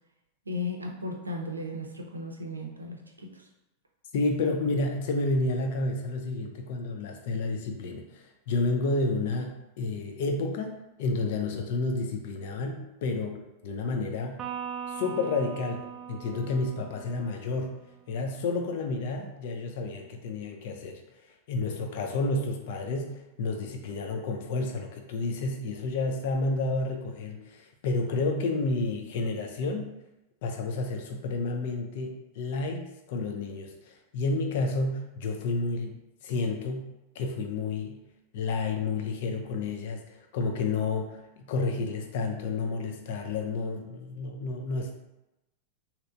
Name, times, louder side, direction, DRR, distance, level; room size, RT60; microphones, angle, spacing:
voice 1, 0.5-3.4, left 2 dB, 80° right, 1 dB, 0.5 m, -36 dB
voice 2, 4.1-14.4 14.9-17.8 18.1-21.0 21.5-29.9 30.4-36.0 36.2-36.9 37.2-38.0 38.3-40.0 40.3-45.0, left 3 dB, 50° left, 4 dB, 0.5 m, -30 dB
Electric guitar, 14.4-17.9, right 8 dB, 25° right, 0.3 m, -40 dB
3.1 x 2.8 x 2.5 m, 0.96 s
figure-of-eight pair, 90°, 0 cm